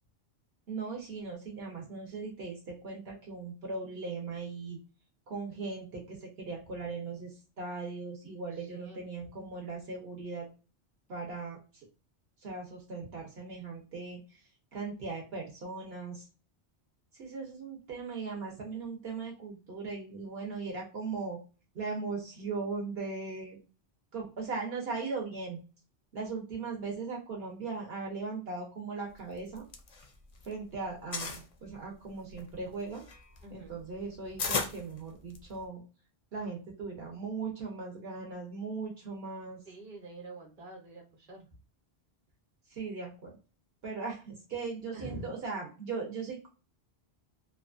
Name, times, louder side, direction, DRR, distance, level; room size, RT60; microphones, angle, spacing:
voice 1, 0.7-4.8 5.3-10.5 11.1-11.6 12.4-14.2 14.7-16.2 17.1-21.4 21.7-23.6 24.1-25.6 26.1-29.6 30.5-33.0 33.5-35.8 36.3-39.6 42.7-43.4 43.8-46.5, right 4 dB, 70° right, -1 dB, 1.0 m, -38 dB
voice 2, 8.5-9.3 33.4-33.7 34.4-34.6 39.6-41.5 44.9-45.3, right 1 dB, 40° right, -1 dB, 1.0 m, -46 dB
sound 1, 29.4-30.5 30.8-31.5 32.1-35.6, left 4 dB, 50° left, 0.4 m, -36 dB
2.7 x 2.3 x 2.4 m, 0.33 s
omnidirectional pair, 1.1 m